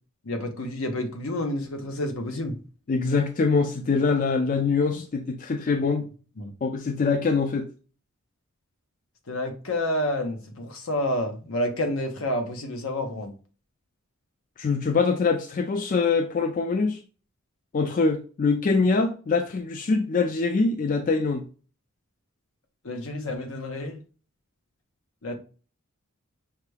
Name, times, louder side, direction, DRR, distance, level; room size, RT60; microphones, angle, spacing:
voice 1, 0.2-2.5 6.4-6.5 9.3-13.3 22.8-24.0 25.2-25.3, left 1 dB, 75° left, 0.9 m, -29 dB
voice 2, 2.9-6.1 6.6-7.7 14.6-17.0 17.7-21.4, left 4 dB, 40° left, 0.3 m, -24 dB
5.7 x 2.3 x 3.2 m
head